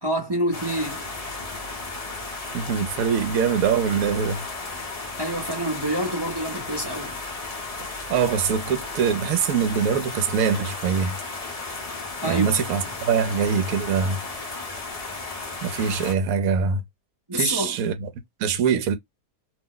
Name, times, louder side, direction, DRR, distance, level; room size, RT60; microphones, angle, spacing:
voice 1, 0.0-1.0 5.2-7.2 12.2-12.9 17.3-17.8, right 1 dB, 25° right, 0.5 m, -27 dB
sound 1, 0.5-16.1, left 3 dB, 35° left, 0.7 m, -34 dB
voice 2, 2.5-4.4 8.1-11.2 12.2-14.2 15.6-16.8 17.3-18.1 18.4-19.0, right 7 dB, 70° right, 1.0 m, -23 dB
2.8 x 2.1 x 3.7 m
omnidirectional pair, 1.7 m